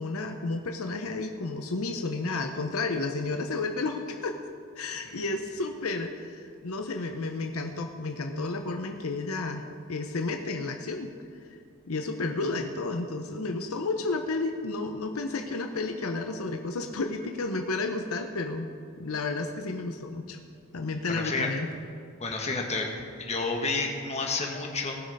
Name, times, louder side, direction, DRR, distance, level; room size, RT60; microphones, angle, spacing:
voice 1, 0.0-4.4 4.8-11.1 11.5-11.6 11.9-18.7 19.0-20.4 20.7-21.7, left 3 dB, 75° left, 5 dB, 0.8 m, -32 dB
voice 2, 21.1-21.5 22.2-22.9 23.2-25.0, left 3 dB, 30° left, 1 dB, 1.5 m, -30 dB
18.0 x 6.4 x 5.4 m, 2.3 s
head